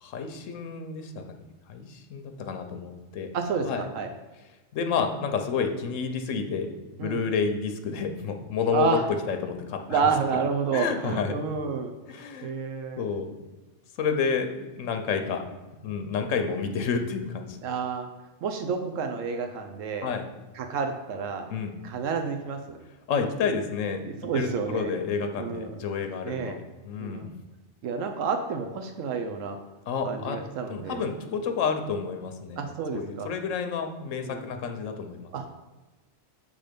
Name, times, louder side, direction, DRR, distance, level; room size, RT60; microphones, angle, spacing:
voice 1, 0.0-1.2 1.7-3.3 3.6-3.9 4.7-9.0 9.3-10.1 10.7-11.3 12.1-12.5 13.0-13.4 14.0-15.4 15.8-17.6 20.0-20.2 21.5-21.8 23.1-24.0 24.3-26.5 26.8-27.3 29.9-30.4 30.7-35.3, left 6 dB, 80° left, 6 dB, 1.1 m, -30 dB
voice 2, 3.3-4.1 7.0-7.2 8.7-9.1 9.9-11.9 12.4-13.1 17.6-18.1 18.4-20.1 20.5-21.5 21.8-22.8 24.0-24.9 25.4-25.8 26.2-26.6 27.0-27.3 27.8-29.6 30.0-31.0 32.6-33.3 34.2-34.5 35.3-35.5, right 5 dB, 80° right, 5 dB, 1.0 m, -29 dB
6.7 x 3.7 x 5.1 m, 1.2 s
omnidirectional pair, 1.3 m